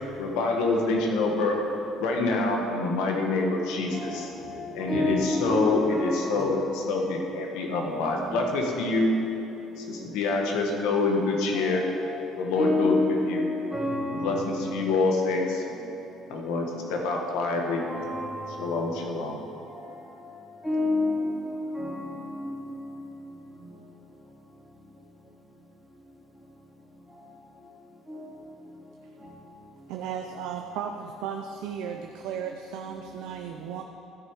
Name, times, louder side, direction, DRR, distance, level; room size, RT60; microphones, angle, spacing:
voice 1, 0.2-1.6 2.0-4.3 4.7-9.2 9.8-11.9 12.4-13.4 14.1-15.6 16.3-17.8 18.6-19.4, left 3 dB, 85° left, 1 dB, 1.4 m, -26 dB
voice 2, 3.9-6.6 6.8-7.1 7.9-8.3 11.5-12.1 12.6-14.7 17.9-18.7 19.7-20.1 20.6-22.8 28.1-28.2, left 2 dB, ahead, -6 dB, 2.3 m, -29 dB
voice 3, 29.9-33.8, right 7 dB, 80° right, 4 dB, 0.5 m, -35 dB
13.5 x 6.2 x 4.7 m, 2.9 s
cardioid pair, 130°, 0 cm